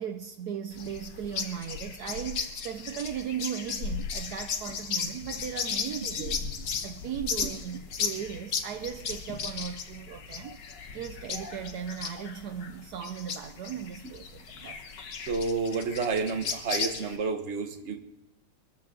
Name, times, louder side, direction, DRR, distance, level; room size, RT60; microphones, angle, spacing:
voice 1, 0.0-10.6 10.9-14.8, right 9 dB, 70° right, 0.9 m, -37 dB
sound 1, 0.7-17.2, left 6 dB, 55° left, 1.6 m, -36 dB
voice 2, 15.3-18.0, right 4 dB, 40° right, 1.2 m, -30 dB
24.5 x 14.0 x 3.8 m
omnidirectional pair, 2.4 m